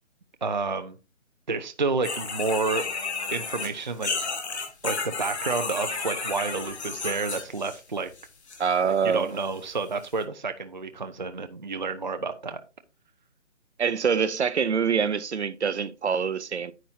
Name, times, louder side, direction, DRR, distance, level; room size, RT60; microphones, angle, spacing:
voice 1, 0.4-1.0 1.5-2.9 3.3-4.1 4.8-8.1 8.8-12.6, right 4 dB, 40° right, 0.5 m, -30 dB
sound 1, 2.0-7.8 8.2-8.7 9.4-9.5 10.0-10.1, left 4 dB, 60° left, 2.8 m, -32 dB
voice 2, 8.6-9.3 13.8-16.7, right 6 dB, 65° right, 0.9 m, -25 dB
10.0 x 8.5 x 2.7 m
hypercardioid pair, 175°, 37 cm